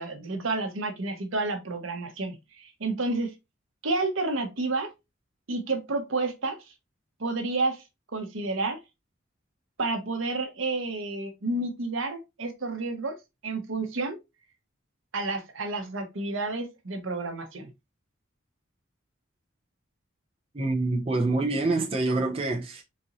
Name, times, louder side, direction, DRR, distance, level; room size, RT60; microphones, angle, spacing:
voice 1, 0.0-3.3 3.8-4.9 5.5-6.6 7.2-7.8 8.1-8.8 9.8-13.2 13.4-14.2 15.1-17.7, right 3 dB, 75° right, 0.8 m, -30 dB
voice 2, 20.5-22.8, right 2 dB, 30° right, 0.6 m, -26 dB
4.0 x 2.6 x 2.8 m
head